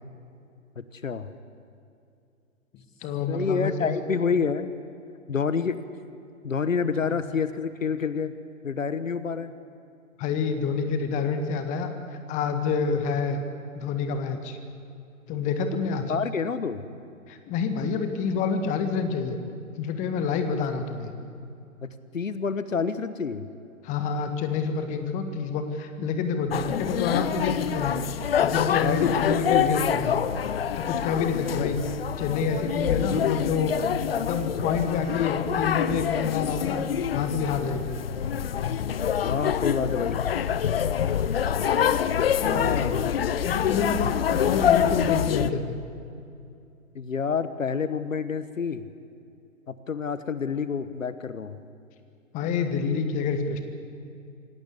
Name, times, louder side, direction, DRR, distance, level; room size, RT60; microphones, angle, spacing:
voice 1, 0.8-1.3 3.3-4.7 5.3-5.8 6.4-8.3 8.6-9.5 16.1-16.8 21.8-23.5 28.8-29.3 31.6-31.7 39.2-40.2 42.1-43.1 46.9-48.9 49.7-51.6, left 5 dB, 65° left, 13 dB, 1.3 m, -28 dB
voice 2, 3.0-4.0 7.0-7.2 10.2-13.4 13.7-14.6 15.3-16.1 17.3-19.4 19.8-21.1 23.8-28.0 28.4-30.2 30.8-31.8 32.2-33.7 34.1-36.8 37.1-38.0 42.3-42.9 43.3-45.8 52.3-53.6, left 5 dB, 20° left, 8 dB, 1.7 m, -28 dB
sound 1, 26.5-45.5, left 8 dB, 45° left, 0.9 m, -26 dB
26.5 x 18.0 x 8.4 m, 2.5 s
figure-of-eight pair, 125°, 42 cm